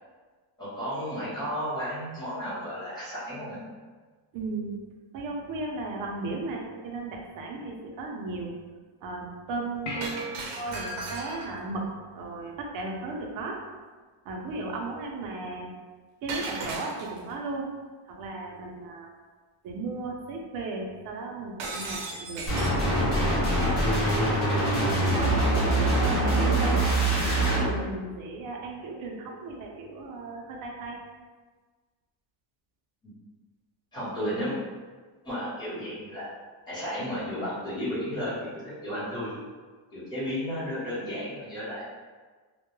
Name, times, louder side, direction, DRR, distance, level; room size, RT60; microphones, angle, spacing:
voice 1, 0.6-3.6 10.2-10.5 33.0-33.1 33.9-34.6 35.2-36.3 36.7-39.4 39.9-41.8, equal, 10° left, -12 dB, 0.9 m, -33 dB
voice 2, 4.3-4.8 5.1-8.5 9.0-10.2 10.6-11.9 12.1-13.6 14.3-15.7 16.2-17.7 18.1-19.1 19.6-22.5 24.9-27.0 27.4-31.0, right 3 dB, 45° right, 0 dB, 0.4 m, -35 dB
sound 1, 9.9-12.6 16.6-16.7, left 2 dB, 60° left, 0.6 m, -42 dB
Shatter, 10.0-11.7 16.3-17.3 21.6-22.9, right 3 dB, 85° right, 0.7 m, -36 dB
sound 2, 22.5-27.7, right 1 dB, 45° left, 0.9 m, -24 dB
2.2 x 2.1 x 3.0 m, 1.4 s
cardioid pair, 165°, 48 cm